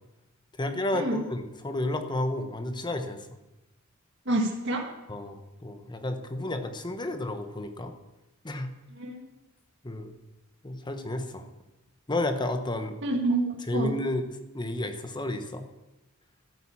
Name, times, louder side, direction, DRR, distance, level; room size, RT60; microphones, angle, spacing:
voice 1, 0.6-3.3 5.1-7.9 8.4-8.7 9.8-10.1 10.6-11.5 12.1-13.0 13.7-14.2 14.5-15.6, left 1 dB, 20° left, 7 dB, 1.0 m, -31 dB
voice 2, 4.3-4.9 8.9-9.3 13.0-13.9, right 2 dB, 60° right, 0 dB, 1.7 m, -28 dB
12.5 x 9.3 x 7.2 m, 1.0 s
head